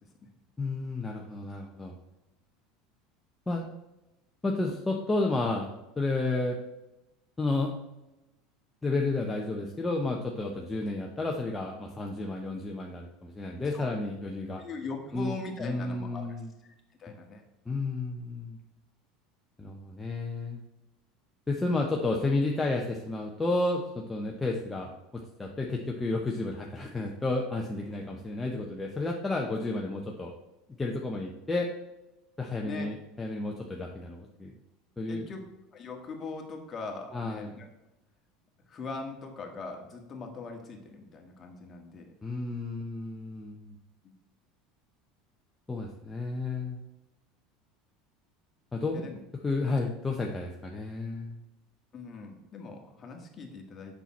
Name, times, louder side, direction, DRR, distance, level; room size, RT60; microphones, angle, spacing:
voice 1, 0.6-1.9 3.5-3.6 4.4-5.7 6.0-6.6 7.4-7.7 8.8-14.6 15.1-15.3 15.6-16.5 17.1-17.2 17.7-18.6 19.6-20.6 21.5-24.9 25.4-30.3 30.8-31.7 32.4-34.5 35.0-35.3 37.1-37.5 42.2-43.8 45.7-46.8 48.7-49.1 49.4-51.4, left 2 dB, 15° left, -1 dB, 0.8 m, -31 dB
voice 2, 14.6-16.3 17.0-17.4 32.6-32.9 35.1-35.4 35.7-37.7 38.7-42.1 44.0-44.1 48.9-49.2 49.6-49.7 51.9-54.0, left 3 dB, 30° left, 2 dB, 1.7 m, -41 dB
6.9 x 5.9 x 4.2 m, 1.0 s
supercardioid pair, 105°, 0 cm